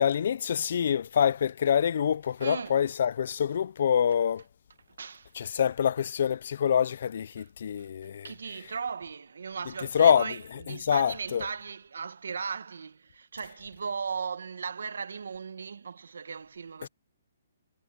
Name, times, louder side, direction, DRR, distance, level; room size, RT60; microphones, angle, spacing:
voice 1, 0.0-4.4 5.4-8.3 9.9-10.3 10.7-11.5 16.8-16.9, left 8 dB, 45° left, 0.3 m, -26 dB
voice 2, 2.4-2.8 4.9-5.5 7.4-7.5 7.8-7.9 8.2-16.9, right 5 dB, 85° right, 1.2 m, -37 dB
hypercardioid pair, 175°, 0 cm